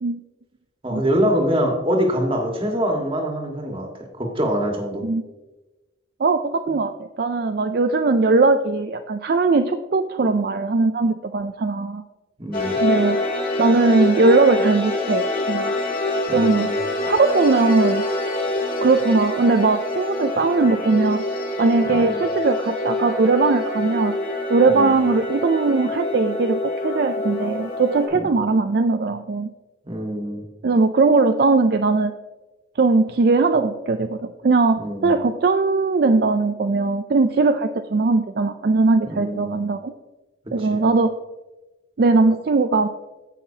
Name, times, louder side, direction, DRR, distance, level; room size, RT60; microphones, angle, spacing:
voice 1, 0.8-5.0 12.4-12.8 16.3-16.8 21.9-22.2 24.7-24.9 28.1-28.3 29.8-30.4 34.8-35.1 39.1-39.5 40.6-40.8, equal, 30° right, 1 dB, 1.6 m, -24 dB
voice 2, 6.2-12.0 12.8-13.2 13.6-15.7 16.3-16.7 17.0-18.1 18.8-21.2 21.6-24.1 24.5-29.5 30.6-32.1 32.8-34.2 34.4-39.9 40.5-41.1 42.0-42.9, right 3 dB, 55° right, 7 dB, 0.4 m, -19 dB
sound 1, 12.5-28.1, left 2 dB, 45° left, 2.6 m, -25 dB
15.5 x 5.8 x 2.8 m, 1.1 s
head